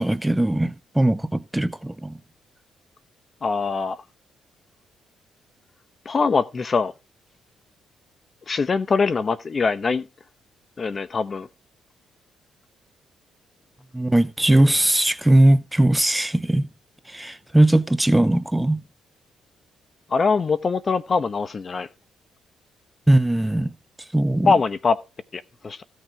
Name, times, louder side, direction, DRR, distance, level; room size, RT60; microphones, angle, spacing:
voice 1, 0.0-2.2 13.9-16.7 17.1-18.8 23.1-23.7 24.1-24.5, right 1 dB, 10° right, 0.7 m, -19 dB
voice 2, 3.4-4.0 6.0-6.9 8.5-10.1 10.8-11.5 20.1-21.9 24.4-25.0 25.3-25.8, left 4 dB, 40° left, 0.9 m, -22 dB
15.5 x 6.4 x 4.7 m
cardioid pair, 90°, 0 cm